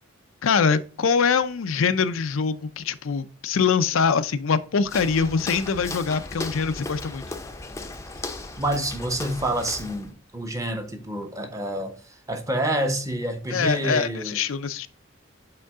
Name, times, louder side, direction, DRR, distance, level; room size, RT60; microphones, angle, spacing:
voice 1, 0.4-7.2 13.5-14.9, left 5 dB, 80° left, 0.5 m, -23 dB
Walk footsteps, 4.8-10.1, left 2 dB, 15° left, 0.6 m, -36 dB
voice 2, 8.2-14.4, right 1 dB, 15° right, 0.8 m, -28 dB
7.8 x 3.8 x 3.6 m
head